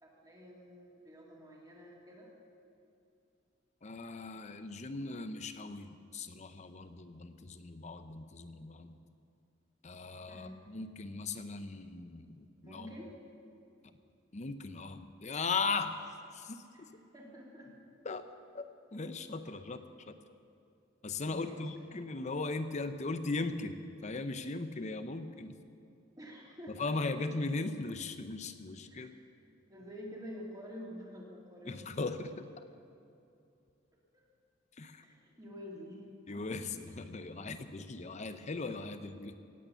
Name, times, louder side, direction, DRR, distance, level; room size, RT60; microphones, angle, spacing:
voice 1, 0.0-2.3 10.3-10.5 12.6-13.1 16.7-16.8 17.1-17.7 21.2-21.6 26.2-26.9 29.0-29.2 29.7-31.7 35.0-36.0 36.3-36.4, equal, 20° right, -3 dB, 2.8 m, -48 dB
voice 2, 3.8-9.0 9.8-12.9 14.3-16.0 16.3-16.6 18.0-18.2 18.5-19.8 20.1-20.2 21.0-25.6 26.7-29.1 31.7-32.6 34.7-35.0 36.3-39.4, left 3 dB, 35° left, 10 dB, 0.7 m, -38 dB
17.5 x 8.7 x 6.9 m, 2.6 s
head